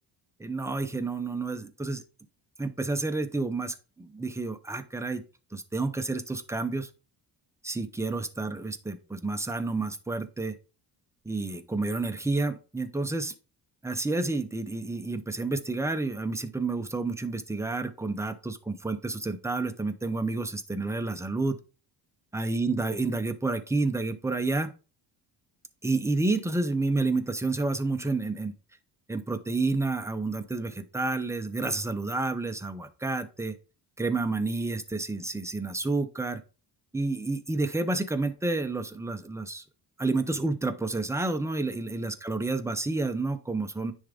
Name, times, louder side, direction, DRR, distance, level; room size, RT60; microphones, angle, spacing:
voice 1, 0.4-2.0 2.6-5.2 5.5-6.9 7.6-10.6 11.2-13.3 13.8-21.6 22.3-24.7 25.8-28.5 29.1-33.6 34.0-36.4 36.9-39.6 40.0-43.9, right 3 dB, 5° right, 8 dB, 0.7 m, -30 dB
10.0 x 3.6 x 3.6 m, 0.34 s
cardioid pair, 120°, 42 cm